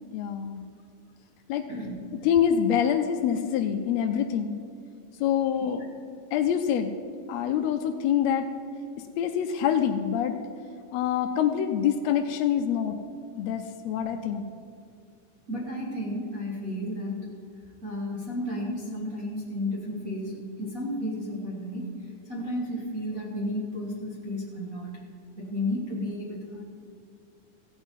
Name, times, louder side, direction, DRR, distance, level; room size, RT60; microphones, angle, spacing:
voice 1, 0.1-0.6 1.5-1.7 2.1-4.6 5.2-5.8 6.3-6.9 7.3-8.5 9.0-10.4 10.9-12.9 13.4-14.4, left 9 dB, 80° left, 5 dB, 1.6 m, -25 dB
voice 2, 15.5-17.3 17.8-25.0 25.4-26.6, left 1 dB, 40° right, -4 dB, 1.4 m, -33 dB
15.5 x 8.2 x 5.5 m, 2.3 s
omnidirectional pair, 3.6 m